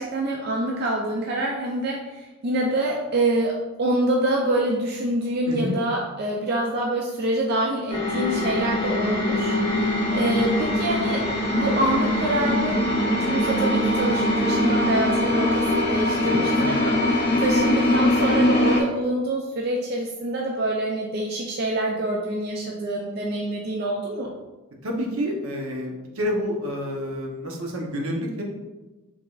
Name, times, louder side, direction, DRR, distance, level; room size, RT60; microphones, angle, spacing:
voice 1, 0.0-11.2 11.5-12.8 13.1-24.3, right 1 dB, 45° right, -1 dB, 0.4 m, -26 dB
voice 2, 5.5-5.8 16.2-16.8 24.8-28.4, equal, 75° right, 0 dB, 0.8 m, -29 dB
sound 1, 7.9-18.8, left 1 dB, 25° left, 0.7 m, -22 dB
5.0 x 3.4 x 2.4 m, 1.1 s
head